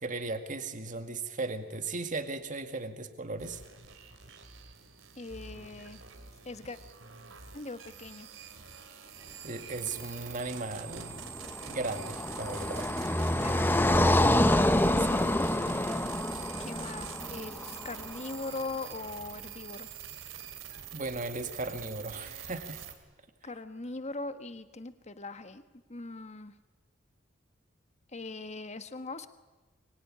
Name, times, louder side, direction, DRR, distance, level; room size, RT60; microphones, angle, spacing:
voice 1, 0.0-3.6 9.4-11.3 11.7-12.9 20.9-22.8, right 3 dB, 40° right, 7 dB, 2.0 m, -36 dB
sound 1, 3.4-22.9, right 8 dB, 85° right, 3.0 m, -45 dB
voice 2, 5.2-6.0 6.4-6.8 7.5-8.3 13.3-13.9 14.8-15.8 16.6-19.9 23.4-25.6 25.9-26.5 28.1-29.3, left 3 dB, 35° left, 10 dB, 1.4 m, -41 dB
Car passing by, 11.0-18.2, left 1 dB, 10° left, 0.9 m, -27 dB
24.0 x 23.0 x 9.8 m, 1.2 s
head